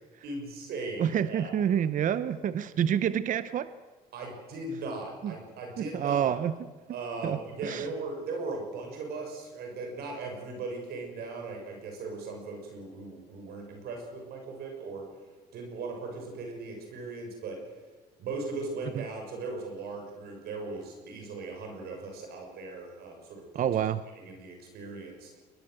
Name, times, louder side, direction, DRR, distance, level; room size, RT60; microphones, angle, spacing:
voice 1, 0.2-1.5 4.1-6.3 6.9-15.0 15.5-17.6 18.2-23.7 24.2-25.4, right 3 dB, 70° right, 2 dB, 6.8 m, -38 dB
voice 2, 1.0-3.7 5.2-5.3 5.8-6.5 7.2-7.8 23.5-24.0, right 9 dB, 50° right, 14 dB, 0.9 m, -28 dB
21.5 x 20.5 x 8.0 m, 1.3 s
cardioid pair, 110°, 17 cm